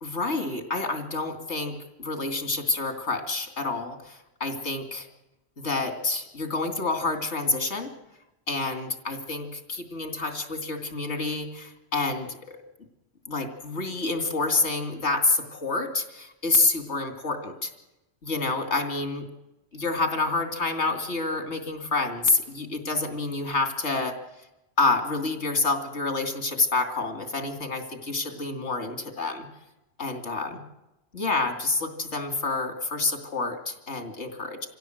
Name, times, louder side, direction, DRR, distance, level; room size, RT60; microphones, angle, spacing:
voice 1, 0.0-5.1 5.6-7.9 8.5-12.6 13.3-17.7 18.2-19.3 19.7-24.2 24.8-29.5 30.0-30.6 31.1-34.7, left 3 dB, 90° left, 6 dB, 2.9 m, -28 dB
25.5 x 16.5 x 7.9 m, 0.95 s
omnidirectional pair, 1.1 m